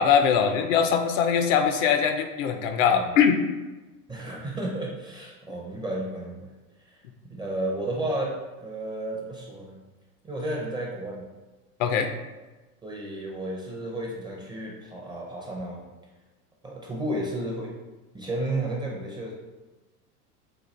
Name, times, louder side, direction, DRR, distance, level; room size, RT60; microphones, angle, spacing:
voice 1, 0.0-3.4 11.8-12.1, left 7 dB, 60° left, 7 dB, 0.5 m, -22 dB
voice 2, 2.9-3.2 4.1-6.5 6.9-9.8 10.2-11.3 12.8-15.9 16.6-17.7 18.1-19.3, right 1 dB, 10° right, -2 dB, 0.4 m, -32 dB
4.1 x 2.2 x 3.2 m, 1.2 s
hypercardioid pair, 85°, 47 cm